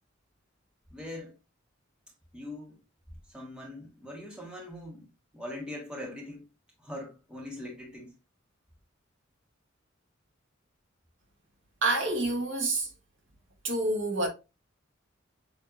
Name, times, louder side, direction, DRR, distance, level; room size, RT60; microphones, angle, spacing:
voice 1, 0.9-1.3 2.3-2.8 3.3-5.1 5.3-6.4 6.8-8.1, left 1 dB, 5° right, 1.2 m, -41 dB
voice 2, 11.8-12.9 13.6-14.3, right 2 dB, 65° right, 1.3 m, -27 dB
7.0 x 2.6 x 2.5 m
head